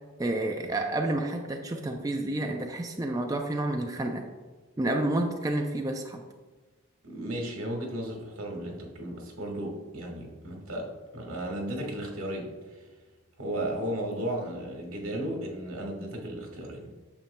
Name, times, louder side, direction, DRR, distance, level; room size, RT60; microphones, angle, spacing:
voice 1, 0.2-4.2 4.8-6.2, right 1 dB, 15° right, 2 dB, 0.4 m, -29 dB
voice 2, 7.0-10.9 11.1-12.8 13.4-17.0, right 1 dB, 85° right, 0 dB, 1.6 m, -35 dB
8.8 x 6.9 x 2.2 m, 1.3 s
head